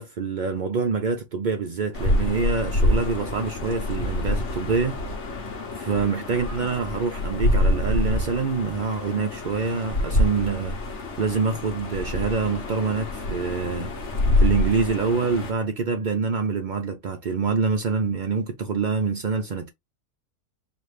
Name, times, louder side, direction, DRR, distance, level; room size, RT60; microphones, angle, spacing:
voice 1, 0.0-5.0 5.8-10.8 11.2-13.9 14.4-19.7, right 4 dB, 65° right, 0.4 m, -26 dB
sound 1, 1.9-15.5, left 1 dB, 50° left, 1.3 m, -26 dB
4.6 x 2.6 x 3.2 m
omnidirectional pair, 1.6 m